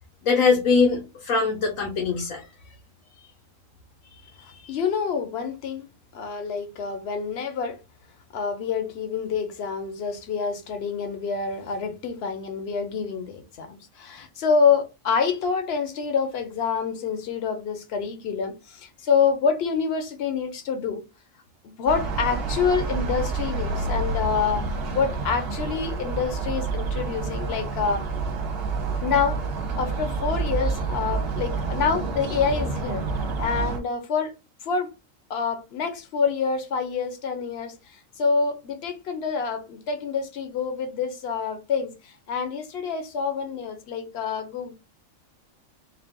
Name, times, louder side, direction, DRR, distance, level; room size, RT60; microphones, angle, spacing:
voice 1, 0.2-2.4, left 4 dB, 75° left, 1.3 m, -22 dB
voice 2, 4.4-5.9 6.1-7.8 8.3-21.0 21.8-24.6 24.9-28.1 29.0-29.4 29.8-33.0 33.4-34.3 34.6-34.9 35.3-44.7, left 6 dB, 55° left, 1.0 m, -27 dB
sound 1, 21.9-33.8, right 4 dB, 50° right, 1.0 m, -28 dB
3.9 x 2.4 x 3.6 m
omnidirectional pair, 1.4 m